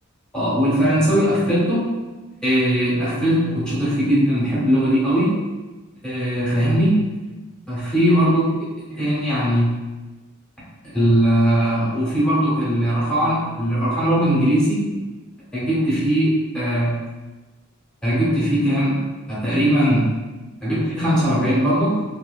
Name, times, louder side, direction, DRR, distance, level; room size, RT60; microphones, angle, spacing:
voice 1, 0.3-1.9 2.4-5.3 6.0-7.1 7.7-8.4 8.9-9.8 10.8-14.8 15.5-17.0 18.0-19.0 19.3-20.2 20.6-22.0, equal, 5° left, -10 dB, 0.9 m, -19 dB
2.7 x 2.6 x 2.3 m, 1.2 s
head